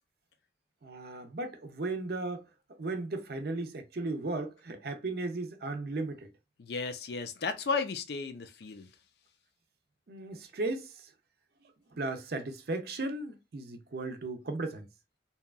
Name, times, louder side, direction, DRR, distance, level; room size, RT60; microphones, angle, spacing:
voice 1, 0.8-2.5 2.8-6.3 10.1-11.1 11.9-14.9, right 2 dB, 55° right, 0.5 m, -36 dB
voice 2, 6.6-8.9, left 4 dB, 60° left, 0.4 m, -34 dB
2.8 x 2.3 x 2.3 m
head